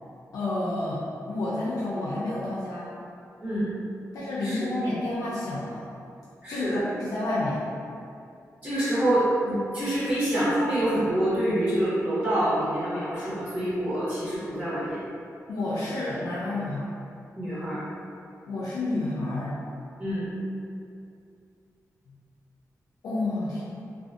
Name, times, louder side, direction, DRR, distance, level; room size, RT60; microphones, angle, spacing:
voice 1, 0.3-2.9 4.1-5.9 6.5-7.6 15.5-16.9 18.5-19.5 23.0-23.6, left 2 dB, 80° left, -7 dB, 0.4 m, -30 dB
voice 2, 3.4-3.7 4.4-4.5 6.4-6.8 8.6-15.0 17.4-17.8 20.0-20.3, right 1 dB, 25° right, -12 dB, 0.8 m, -26 dB
2.5 x 2.2 x 2.4 m, 2.5 s
wide cardioid pair, 160°, 6 cm